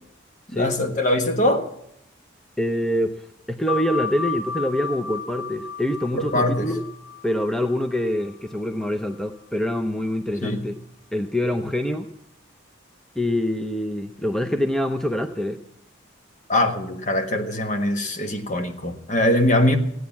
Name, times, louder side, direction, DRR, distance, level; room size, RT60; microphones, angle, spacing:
voice 1, 0.5-1.7 6.1-6.7 10.4-10.6 16.5-19.8, left 1 dB, 40° left, 1.4 m, -22 dB
voice 2, 2.6-6.8 7.2-10.8 11.1-12.1 13.2-15.6, left 1 dB, ahead, 0.6 m, -25 dB
sound 1, 3.7-8.9, left 5 dB, 15° right, 2.4 m, -33 dB
15.5 x 9.4 x 7.2 m
head